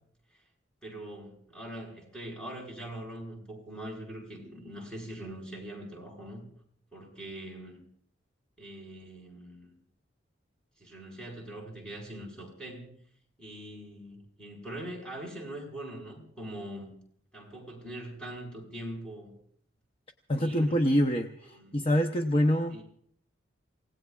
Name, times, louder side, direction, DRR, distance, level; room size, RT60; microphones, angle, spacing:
voice 1, 0.8-6.4 6.9-7.8 8.6-9.8 10.8-12.9 13.4-16.9 17.3-19.3 20.3-20.8 21.5-21.8 22.7-22.8, right 1 dB, 5° left, -1 dB, 5.0 m, -42 dB
voice 2, 20.3-22.8, equal, 30° left, 4 dB, 0.8 m, -26 dB
28.5 x 17.5 x 2.4 m, 0.65 s
head